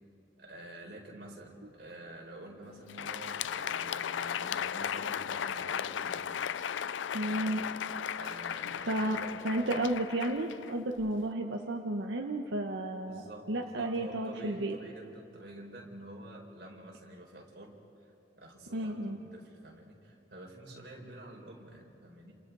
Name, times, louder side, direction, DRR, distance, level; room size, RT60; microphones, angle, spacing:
voice 1, 0.4-6.3 7.2-7.6 8.1-9.9 13.1-22.4, right 1 dB, 60° right, -1 dB, 4.6 m, -49 dB
Crowd, 2.8-11.2, left 8 dB, 85° left, 0.4 m, -36 dB
voice 2, 7.1-7.6 8.9-13.2 13.5-14.8 18.7-19.2, right 1 dB, 85° right, 1 dB, 1.2 m, -32 dB
30.0 x 27.5 x 4.8 m, 2.8 s
head